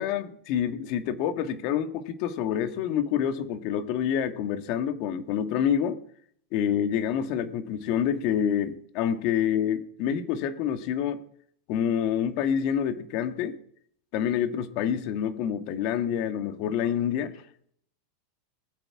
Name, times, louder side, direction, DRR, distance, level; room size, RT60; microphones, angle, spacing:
voice 1, 0.0-6.0 6.5-11.2 11.7-13.6 14.1-17.4, left 9 dB, 55° left, 8 dB, 1.8 m, -27 dB
20.0 x 8.1 x 4.9 m, 0.65 s
hypercardioid pair, 120°, 0 cm